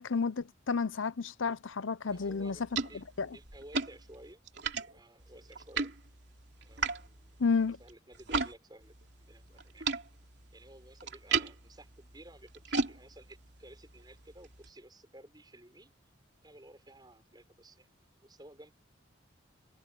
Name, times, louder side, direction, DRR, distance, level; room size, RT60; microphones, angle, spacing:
voice 1, 0.0-2.6 3.2-3.3 7.4-7.8, left 5 dB, 80° left, 0.7 m, -31 dB
voice 2, 2.0-4.4 4.8-5.9 6.6-7.4 7.8-10.0 10.5-15.9 16.4-17.9 18.2-18.7, right 1 dB, 20° right, 6.3 m, -55 dB
sound 1, 2.1-8.5 8.8-14.7, right 4 dB, 60° right, 3.1 m, -38 dB
head